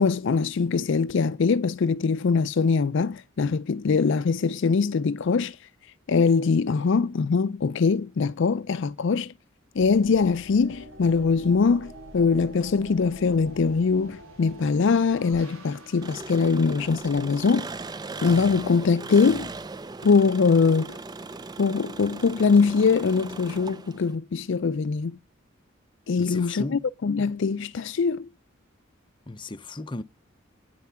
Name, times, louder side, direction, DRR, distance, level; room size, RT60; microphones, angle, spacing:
voice 1, 0.0-5.6 6.1-9.3 9.8-17.7 18.2-19.5 20.0-21.0 21.6-25.2 26.1-28.3, left 5 dB, 60° left, 0.4 m, -22 dB
sound 1, 9.8-17.9, right 1 dB, 80° right, 4.1 m, -46 dB
Engine, 16.0-24.1, right 3 dB, 20° right, 0.4 m, -38 dB
voice 2, 26.2-26.9 29.3-30.0, left 2 dB, 25° left, 0.6 m, -35 dB
9.4 x 5.9 x 5.6 m
head